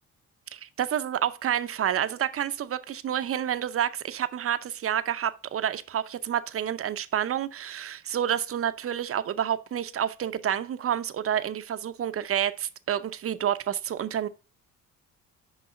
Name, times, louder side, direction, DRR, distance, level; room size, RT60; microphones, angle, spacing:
voice 1, 0.5-14.3, right 10 dB, 50° right, 0.7 m, -29 dB
6.4 x 5.2 x 5.1 m
cardioid pair, 90°, 30 cm